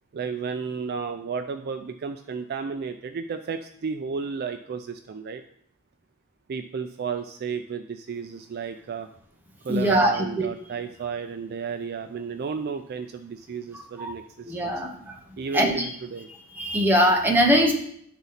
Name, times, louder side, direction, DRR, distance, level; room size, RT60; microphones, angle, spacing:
voice 1, 0.1-5.4 6.5-9.1 9.6-14.8 15.4-16.3, right 5 dB, 45° right, 8 dB, 0.3 m, -33 dB
voice 2, 9.7-10.5 14.0-14.1 14.4-15.1 15.5-15.8 16.6-17.7, equal, 10° right, 1 dB, 1.0 m, -21 dB
10.5 x 4.0 x 4.0 m, 0.67 s
head